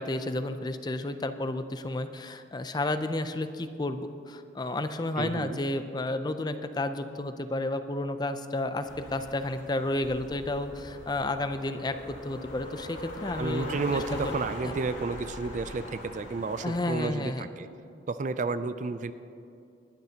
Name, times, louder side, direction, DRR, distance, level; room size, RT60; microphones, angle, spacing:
voice 1, 0.0-13.7 13.9-14.3 16.6-17.5, left 2 dB, 20° left, 10 dB, 0.4 m, -31 dB
voice 2, 5.2-5.6 13.4-17.7 18.1-19.1, right 3 dB, 40° right, 12 dB, 0.3 m, -31 dB
sound 1, 8.8-16.9, left 1 dB, 70° left, 2.2 m, -41 dB
20.0 x 12.0 x 2.9 m, 2.7 s
head